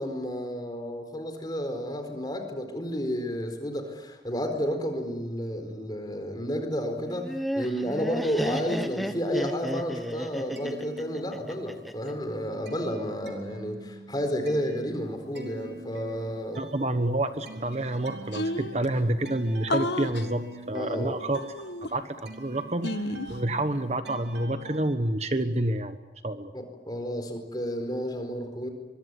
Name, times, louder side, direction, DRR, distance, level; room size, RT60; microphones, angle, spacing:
voice 1, 0.0-16.6 20.7-21.2 26.5-28.7, equal, 25° left, 6 dB, 4.2 m, -31 dB
Laughter, 7.1-12.1, equal, ahead, 1.2 m, -33 dB
sound 1, 10.5-11.8 12.1-24.9, right 2 dB, 85° right, 3.5 m, -45 dB
voice 2, 16.6-21.4 21.8-26.0 26.2-26.5, right 1 dB, 35° right, 9 dB, 1.2 m, -28 dB
sound 2, 17.7-17.8 17.9-18.0 18.3-18.9 19.7-20.3 21.3-22.2 22.8-23.4, left 1 dB, 80° left, 1.4 m, -31 dB
24.0 x 23.5 x 9.7 m, 1.1 s
head